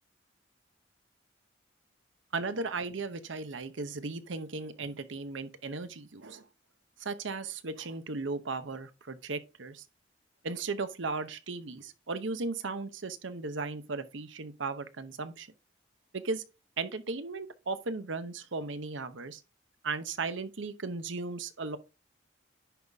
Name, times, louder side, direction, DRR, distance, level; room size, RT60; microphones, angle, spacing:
voice 1, 2.3-6.4 7.0-9.8 10.4-15.5 16.1-16.4 16.8-19.4 19.8-21.8, right 3 dB, 85° right, 0.8 m, -36 dB
10.0 x 4.1 x 3.4 m
head